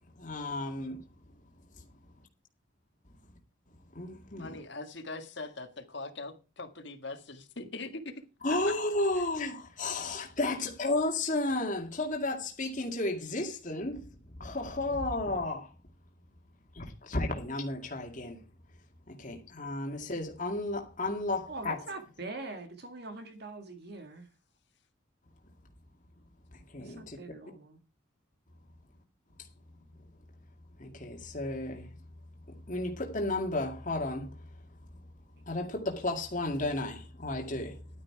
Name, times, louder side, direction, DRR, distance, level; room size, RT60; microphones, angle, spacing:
voice 1, 0.2-1.0 1.8-1.9 3.7-4.6 8.4-14.1 14.4-15.7 16.7-18.4 19.1-21.8 26.5-27.2 29.4-29.5 30.8-31.9 32.5-34.4 35.4-37.8, left 2 dB, 40° left, 2.1 m, -33 dB
voice 2, 4.4-8.2 8.5-8.8, left 3 dB, 55° left, 1.8 m, -41 dB
voice 3, 21.5-24.3 26.8-27.8, right 3 dB, 50° right, 2.0 m, -43 dB
11.5 x 9.6 x 4.7 m
head